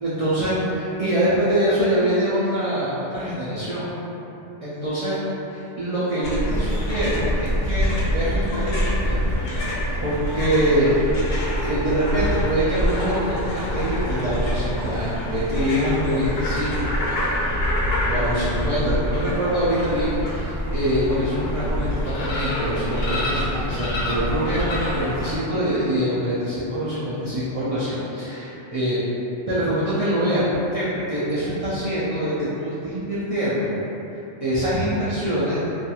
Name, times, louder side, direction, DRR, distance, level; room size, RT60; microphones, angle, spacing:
voice 1, 0.0-3.9 4.6-5.2 5.8-8.8 9.1-9.2 10.0-10.9 11.6-16.8 18.0-29.0 29.5-30.4 30.7-32.3 32.6-33.7 34.4-35.6, equal, 65° right, -12 dB, 0.3 m, -24 dB
sound 1, 6.2-25.4, equal, 65° left, 0.7 m, -25 dB
2.8 x 2.4 x 2.3 m, 2.9 s
omnidirectional pair, 1.2 m